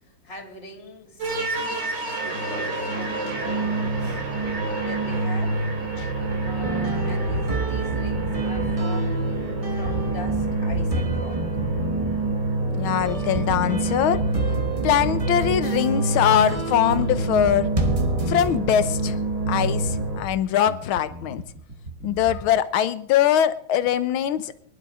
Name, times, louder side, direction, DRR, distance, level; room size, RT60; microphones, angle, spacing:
voice 1, 0.0-1.3 2.2-4.2 4.8-5.6 6.4-9.3 9.7-11.4, left 2 dB, 30° left, 2 dB, 3.3 m, -42 dB
sound 1, 1.2-20.2, right 2 dB, 55° right, 3.8 m, -27 dB
sound 2, 6.6-18.6, right 2 dB, 20° right, 1.1 m, -30 dB
voice 2, 12.8-14.2 14.8-17.7 18.3-19.2 19.5-21.4 22.0-24.6, left 10 dB, 75° left, 13 dB, 1.7 m, -22 dB
Bass guitar, 13.0-22.6, right 1 dB, 35° right, 2.3 m, -39 dB
23.5 x 11.5 x 3.7 m, 0.67 s
omnidirectional pair, 2.4 m